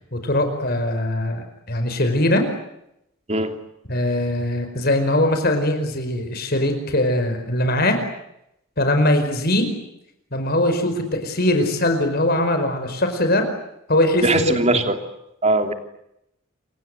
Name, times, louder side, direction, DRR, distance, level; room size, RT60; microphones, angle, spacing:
voice 1, 0.1-2.5 3.9-8.0 8.8-9.8 10.3-13.5 13.9-14.8, left 1 dB, 45° left, 6 dB, 5.0 m, -21 dB
voice 2, 14.2-14.9 15.4-15.7, right 2 dB, 30° right, 7 dB, 3.0 m, -19 dB
29.0 x 25.5 x 8.0 m, 0.81 s
head